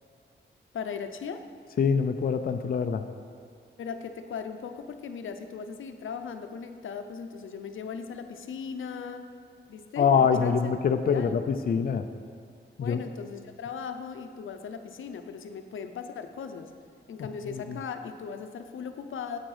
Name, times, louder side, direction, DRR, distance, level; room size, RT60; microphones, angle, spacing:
voice 1, 0.7-1.4 3.8-9.3 9.7-10.6 11.1-11.5 12.8-16.7 17.1-19.4, left 6 dB, 85° left, 7 dB, 0.7 m, -38 dB
voice 2, 1.8-3.0 10.0-12.0 12.8-13.0 17.5-17.8, left 6 dB, 50° left, 7 dB, 0.5 m, -24 dB
9.9 x 8.1 x 4.9 m, 2.3 s
wide cardioid pair, 135°, 20 cm